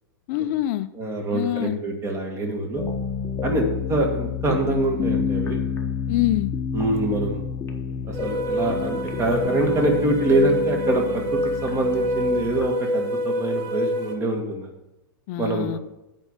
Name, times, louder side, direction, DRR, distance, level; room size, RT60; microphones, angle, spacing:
voice 1, 0.3-0.9 1.3-1.8 6.1-6.5 15.3-15.8, left 14 dB, 45° left, 13 dB, 0.6 m, -25 dB
voice 2, 1.0-2.8 3.4-5.6 6.7-7.4 8.0-14.7 15.4-15.7, right 1 dB, 20° right, 2 dB, 1.9 m, -25 dB
sound 1, 2.8-12.7, left 6 dB, 20° left, 1.1 m, -29 dB
sound 2, 8.1-14.1, equal, 40° right, 1.6 m, -27 dB
8.9 x 5.3 x 7.3 m, 0.94 s
hypercardioid pair, 125°, 12 cm